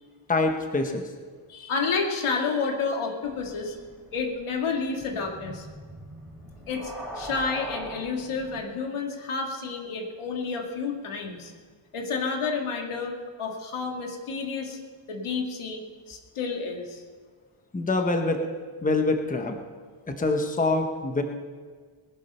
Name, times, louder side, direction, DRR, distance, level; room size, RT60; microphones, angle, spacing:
voice 1, 0.3-1.1 17.7-18.5 18.8-19.6 20.1-21.2, left 2 dB, 15° left, 5 dB, 1.1 m, -25 dB
voice 2, 1.5-3.8 4.1-5.7 6.7-11.5 11.9-14.8 15.1-17.0, left 4 dB, 90° left, 2 dB, 2.3 m, -30 dB
sound 1, 3.2-8.6, right 1 dB, 5° right, 3.6 m, -42 dB
20.0 x 11.5 x 5.6 m, 1.6 s
wide cardioid pair, 170°, 48 cm